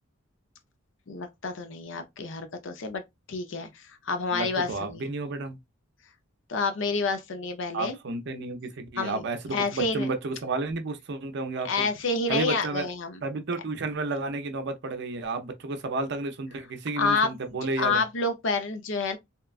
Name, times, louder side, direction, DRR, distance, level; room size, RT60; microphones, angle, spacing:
voice 1, 1.1-3.0 3.3-5.1 6.5-7.9 9.0-10.1 11.6-13.2 17.0-17.3 17.8-19.2, left 4 dB, 65° left, 0.6 m, -29 dB
voice 2, 4.3-5.6 7.7-11.9 12.3-12.9 13.2-18.0, right 3 dB, 55° right, 0.5 m, -31 dB
2.9 x 2.2 x 2.3 m
head